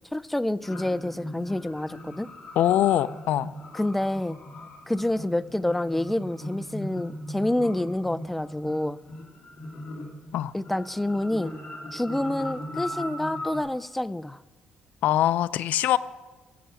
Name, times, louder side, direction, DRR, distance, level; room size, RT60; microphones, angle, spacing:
voice 1, 0.1-2.3 3.7-4.4 4.9-9.0 10.5-11.5 11.9-14.4, left 1 dB, 5° left, 14 dB, 0.3 m, -28 dB
sound 1, 0.6-13.6, left 1 dB, 40° left, 2.7 m, -39 dB
voice 2, 2.6-3.5 10.3-10.5 15.0-16.0, left 12 dB, 70° left, 15 dB, 0.4 m, -22 dB
17.5 x 6.9 x 7.5 m, 1.2 s
cardioid pair, 165°, 3 cm